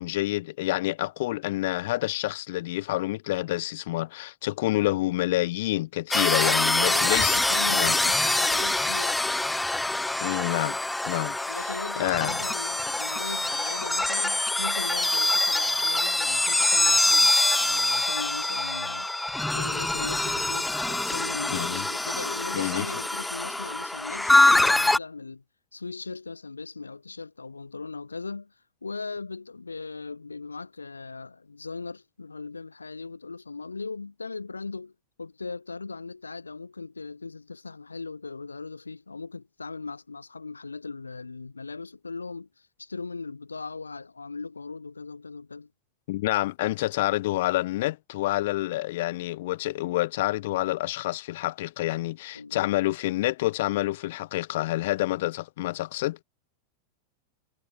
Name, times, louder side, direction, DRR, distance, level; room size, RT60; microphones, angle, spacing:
voice 1, 0.0-7.4 7.7-7.9 10.2-10.8 11.1-11.7 12.0-12.4 21.5-21.8 22.5-22.8 46.1-56.2, left 17 dB, 55° left, 4.7 m, -28 dB
sound 1, 6.1-25.0, left 2 dB, 5° left, 2.5 m, -25 dB
voice 2, 6.2-9.2 11.5-19.1 19.5-25.4 25.7-28.5 28.8-34.9 35.2-45.7 52.3-52.7, left 4 dB, 80° left, 5.1 m, -38 dB
figure-of-eight pair, 90°, 0 cm